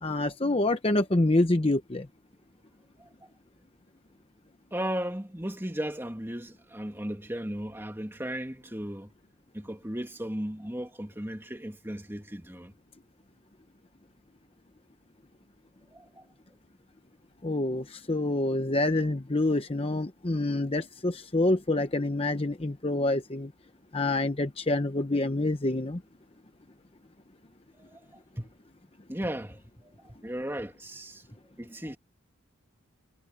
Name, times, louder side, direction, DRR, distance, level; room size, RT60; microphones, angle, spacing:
voice 1, 0.0-2.1 17.4-23.5 23.9-26.0, left 2 dB, 25° left, 0.8 m, -27 dB
voice 2, 4.7-9.1 9.5-12.7 15.9-16.2 27.8-28.0 28.4-28.5 29.1-31.3 31.6-32.0, equal, 10° right, 2.3 m, -36 dB
head